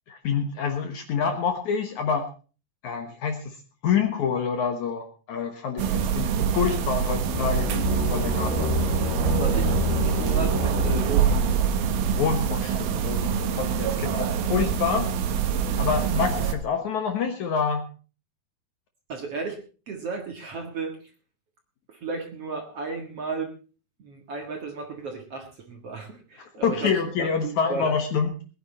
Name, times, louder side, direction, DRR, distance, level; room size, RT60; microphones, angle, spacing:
voice 1, 0.1-2.3 2.8-3.6 3.8-8.6 12.2-15.1 15.8-17.9 26.6-28.3, left 6 dB, 60° left, 6 dB, 2.2 m, -27 dB
sound 1, 5.8-16.5, right 7 dB, 75° right, 3.0 m, -25 dB
sound 2, 7.2-11.9, left 5 dB, 80° left, 4.9 m, -29 dB
voice 2, 9.3-11.6 19.1-19.6 19.9-21.1 21.9-23.5 24.0-26.9 27.2-27.9, right 4 dB, 50° right, 3 dB, 2.2 m, -34 dB
20.5 x 10.0 x 4.3 m, 0.36 s
omnidirectional pair, 4.5 m